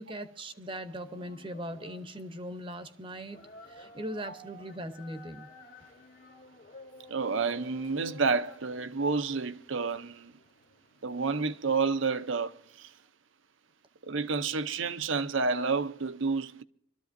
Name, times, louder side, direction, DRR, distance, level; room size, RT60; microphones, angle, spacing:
voice 1, 0.0-5.5, equal, 25° right, 0.8 m, -40 dB
sound 1, 0.8-11.7, left 1 dB, 45° left, 1.3 m, -53 dB
voice 2, 7.1-10.3 11.0-12.9 14.0-16.6, right 4 dB, 70° right, 0.7 m, -30 dB
26.0 x 13.5 x 2.6 m
head